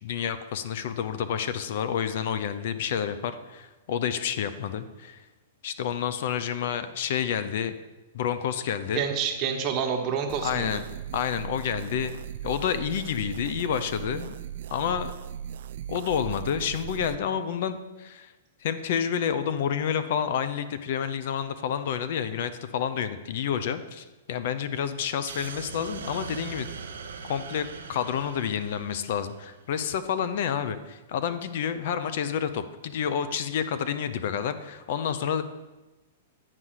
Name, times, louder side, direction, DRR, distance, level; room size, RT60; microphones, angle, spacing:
voice 1, 0.0-5.2 5.6-7.8 8.1-9.0 10.4-10.8 11.1-12.2 12.4-14.4 14.7-15.1 15.9-18.3 18.6-26.7 27.2-35.4, left 8 dB, 60° left, 12 dB, 0.6 m, -29 dB
voice 2, 8.9-10.8, right 7 dB, 35° right, 3 dB, 1.2 m, -28 dB
sound 1, 10.3-17.2, right 10 dB, 65° right, 0.3 m, -38 dB
sound 2, 25.3-29.6, right 5 dB, 85° right, 0.9 m, -41 dB
8.9 x 4.1 x 6.3 m, 1.1 s
hypercardioid pair, 125°, 0 cm